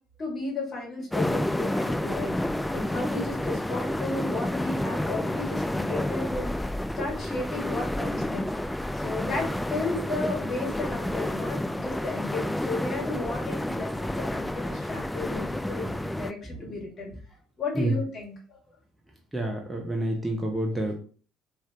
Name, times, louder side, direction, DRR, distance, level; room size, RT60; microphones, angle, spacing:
voice 1, 0.2-2.4 2.7-17.1 17.6-18.6, left 3 dB, 40° left, 0 dB, 1.7 m, -34 dB
sound 1, 1.1-16.3, left 1 dB, 5° left, 0.3 m, -30 dB
voice 2, 19.3-20.9, right 1 dB, 10° right, 0 dB, 0.9 m, -28 dB
4.3 x 3.0 x 3.0 m, 0.42 s
figure-of-eight pair, 55°, 0 cm